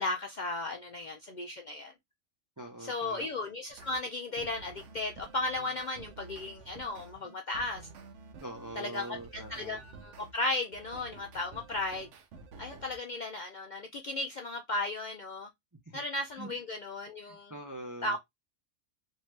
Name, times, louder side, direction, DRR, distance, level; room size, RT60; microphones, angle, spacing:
voice 1, 0.0-1.9 2.8-7.9 8.8-9.2 9.5-12.1 12.6-15.5 15.9-17.5 18.0-18.2, left 2 dB, 60° left, 0.5 m, -35 dB
voice 2, 2.6-3.3 8.4-9.8 15.9-16.0 16.4-16.6 17.2-18.2, right 1 dB, 25° right, 0.4 m, -44 dB
sound 1, 3.7-4.0 4.4-10.3 10.7-13.0, right 3 dB, 75° right, 1.0 m, -51 dB
3.2 x 2.6 x 3.2 m
omnidirectional pair, 1.3 m